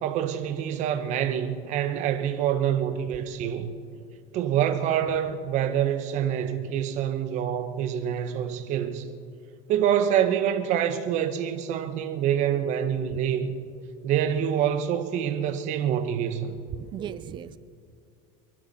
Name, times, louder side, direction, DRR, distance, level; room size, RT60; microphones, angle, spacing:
voice 1, 0.0-3.7 4.3-9.1 9.7-13.5 14.0-16.6, right 9 dB, 40° right, 1.2 m, -26 dB
voice 2, 16.7-17.6, right 10 dB, 25° right, 0.5 m, -36 dB
27.5 x 12.0 x 4.3 m
cardioid pair, 165°, 18 cm